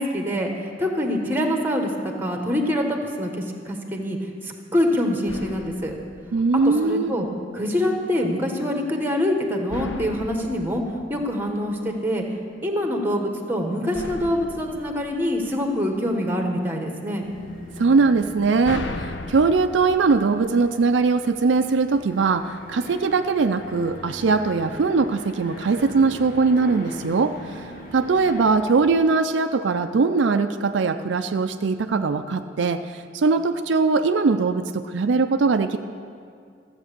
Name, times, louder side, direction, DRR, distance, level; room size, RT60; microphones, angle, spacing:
voice 1, 0.0-4.2 4.4-5.9 6.8-7.3 7.5-10.8 11.1-12.2 12.6-17.2, left 1 dB, 10° right, 3 dB, 1.2 m, -25 dB
sound 1, 5.3-7.2 9.7-12.1 13.9-16.2 18.2-21.2, left 3 dB, 75° left, 0.7 m, -38 dB
voice 2, 6.3-7.1 17.8-27.6 27.9-35.8, right 4 dB, 70° right, 8 dB, 0.4 m, -21 dB
sound 2, 17.2-28.5, left 1 dB, 45° left, 1.9 m, -41 dB
13.5 x 8.0 x 6.7 m, 2.2 s
head